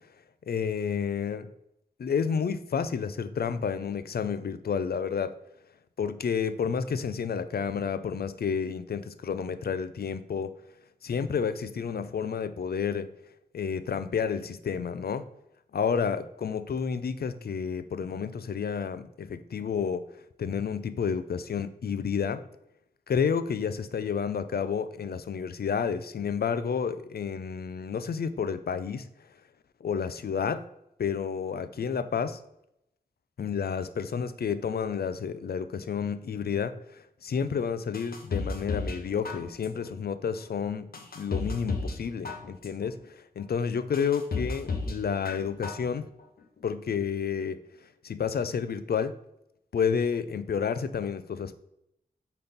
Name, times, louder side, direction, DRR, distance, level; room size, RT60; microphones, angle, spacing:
voice 1, 0.5-1.5 2.0-5.3 6.0-10.5 11.0-13.1 13.5-15.3 15.7-20.0 20.4-22.4 23.1-29.1 29.8-30.7 31.0-32.4 33.4-40.9 41.2-46.1 46.6-47.6 48.0-49.2 49.7-51.6, left 6 dB, 90° left, 12 dB, 0.5 m, -30 dB
sound 1, 37.9-39.0 39.2-39.9 40.4-40.5 40.9-42.0 42.2-42.9 43.4-43.5 43.9-45.0 45.2-45.9 46.2-46.3, left 3 dB, 75° left, 1.1 m, -33 dB
8.6 x 4.3 x 4.1 m, 0.81 s
wide cardioid pair, 75°, 16 cm